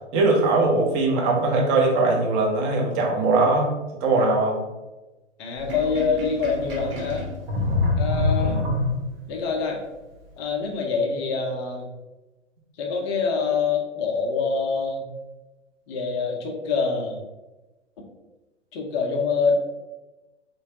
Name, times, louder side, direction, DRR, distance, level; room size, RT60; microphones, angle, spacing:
voice 1, 0.1-3.7 4.0-4.6 8.4-8.6, right 3 dB, 30° right, 0 dB, 0.8 m, -21 dB
voice 2, 5.4-7.3 8.0-8.6 9.3-9.8 10.4-11.9 12.8-15.1 15.9-17.2 18.7-19.5, left 5 dB, 25° left, 1 dB, 0.5 m, -25 dB
Sink (filling or washing), 5.6-9.3, left 3 dB, 50° right, 1.2 m, -26 dB
3.5 x 2.9 x 2.8 m, 1.1 s
figure-of-eight pair, 115°, 36 cm